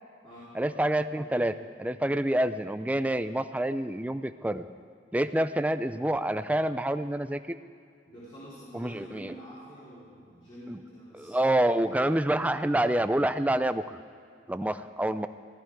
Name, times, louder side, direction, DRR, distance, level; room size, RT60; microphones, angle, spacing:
voice 1, 0.5-4.6 5.1-7.6 8.7-9.4 10.7-10.8 11.1-13.8 14.5-15.3, right 1 dB, 10° right, 11 dB, 0.4 m, -27 dB
voice 2, 8.1-11.4, equal, 30° left, -13 dB, 4.0 m, -47 dB
16.5 x 14.0 x 4.8 m, 2.3 s
head